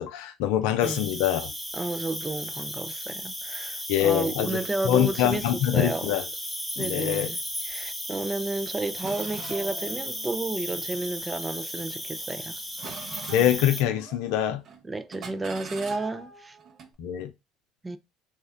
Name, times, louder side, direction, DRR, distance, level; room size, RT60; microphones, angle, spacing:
voice 1, 0.0-1.5 3.9-4.6 4.8-6.2 6.8-7.3 13.3-14.6 17.0-17.3, left 11 dB, 75° left, 0.4 m, -24 dB
Cricket, 0.8-13.8, equal, ahead, 0.7 m, -35 dB
voice 2, 1.7-6.2 6.8-7.4 7.6-12.6 14.8-16.6 17.8-18.0, right 2 dB, 20° right, 0.4 m, -32 dB
sound 1, 8.5-8.6 9.0-11.5 12.0-12.4 12.8-14.4 14.6-14.8 15.1-16.9, right 5 dB, 55° right, 0.7 m, -43 dB
2.4 x 2.1 x 3.6 m
hypercardioid pair, 65°, 0 cm